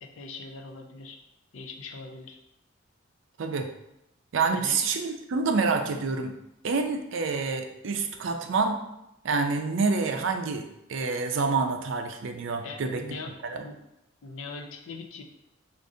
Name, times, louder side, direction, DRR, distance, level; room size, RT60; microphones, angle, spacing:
voice 1, 0.0-1.2 1.5-2.4 4.5-4.8 12.6-13.3 13.6-13.8 14.2-15.2, left 3 dB, 80° left, 4 dB, 0.5 m, -41 dB
voice 2, 3.4-3.7 4.3-6.3 6.6-8.8 9.2-13.0 13.4-13.6, right 4 dB, 70° right, 5 dB, 0.4 m, -27 dB
4.8 x 2.5 x 2.6 m, 0.85 s
head